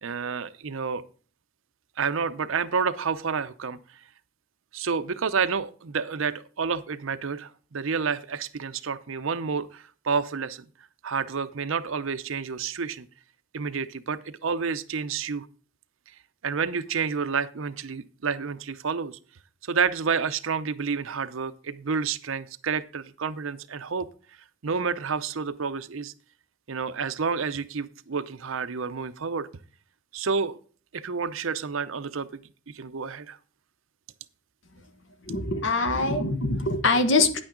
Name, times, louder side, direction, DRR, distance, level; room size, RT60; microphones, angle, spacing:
voice 1, 0.0-1.0 2.0-3.8 4.7-10.7 11.0-13.1 13.5-15.5 16.4-19.2 19.7-24.1 24.6-26.1 26.7-29.5 30.1-30.6 30.9-32.3 32.7-33.4, right 5 dB, 75° right, 12 dB, 0.6 m, -29 dB
voice 2, 35.3-37.4, left 3 dB, 65° left, 8 dB, 1.2 m, -23 dB
9.6 x 8.7 x 3.8 m, 0.42 s
head